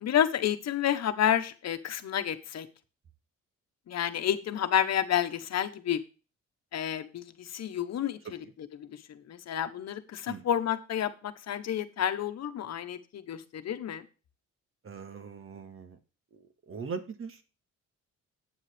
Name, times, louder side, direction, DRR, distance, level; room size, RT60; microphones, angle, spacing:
voice 1, 0.0-2.7 3.9-6.0 6.7-8.2 8.8-14.0, left 10 dB, 60° left, 9 dB, 1.2 m, -30 dB
voice 2, 14.8-16.0 16.3-17.4, right 5 dB, 45° right, 8 dB, 1.9 m, -41 dB
9.3 x 7.4 x 3.4 m, 0.33 s
cardioid pair, 90°, 30 cm